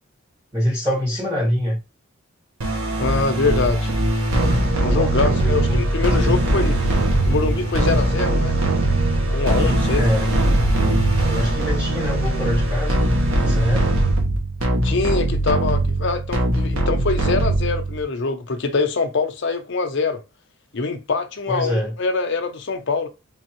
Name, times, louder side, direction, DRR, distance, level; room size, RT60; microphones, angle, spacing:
voice 1, 0.5-1.8 4.7-6.4 10.0-10.3 11.3-13.0 13.4-13.9 21.5-21.9, equal, 20° right, 1.9 m, -25 dB
sound 1, 2.6-18.0, right 1 dB, 75° right, 1.2 m, -20 dB
voice 2, 3.0-3.9 4.8-6.8 7.3-8.5 9.3-10.0 14.8-20.2 20.7-23.1, left 4 dB, 55° left, 0.6 m, -24 dB
3.6 x 3.4 x 3.0 m
head